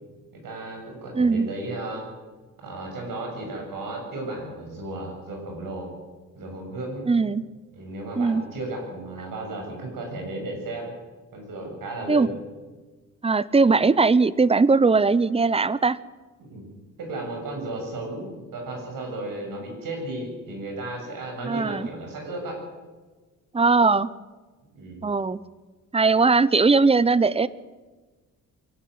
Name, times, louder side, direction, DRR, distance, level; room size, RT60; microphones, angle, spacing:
voice 1, 0.4-2.0 2.6-5.9 6.3-7.1 7.7-10.9 11.3-12.4 16.4-16.7 17.0-22.6 24.7-25.1, right 2 dB, 85° right, 1 dB, 7.2 m, -34 dB
voice 2, 1.1-1.5 7.1-7.4 8.2-8.4 12.1-12.3 13.2-16.0 21.5-21.9 23.5-24.1 25.0-25.4 25.9-27.5, right 4 dB, 20° right, 18 dB, 0.7 m, -19 dB
23.5 x 12.0 x 9.5 m, 1.3 s
cardioid pair, 120°, 33 cm